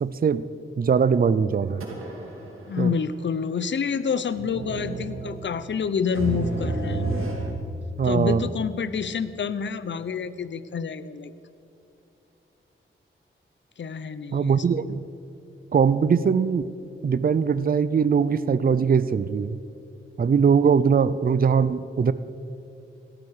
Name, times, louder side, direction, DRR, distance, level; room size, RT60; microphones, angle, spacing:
voice 1, 0.0-0.4 0.8-1.8 2.8-2.9 8.0-8.4 14.3-15.0 15.7-16.6 17.0-19.6 20.2-22.1, right 6 dB, 45° right, 15 dB, 0.5 m, -21 dB
sound 1, 1.5-2.5 2.8-2.9 4.3-7.5, right 2 dB, 85° right, 2.2 m, -31 dB
voice 2, 2.7-7.0 8.0-11.3 13.8-14.6, left 6 dB, 60° left, 14 dB, 0.7 m, -28 dB
18.0 x 13.0 x 4.9 m, 2.8 s
cardioid pair, 70°, 21 cm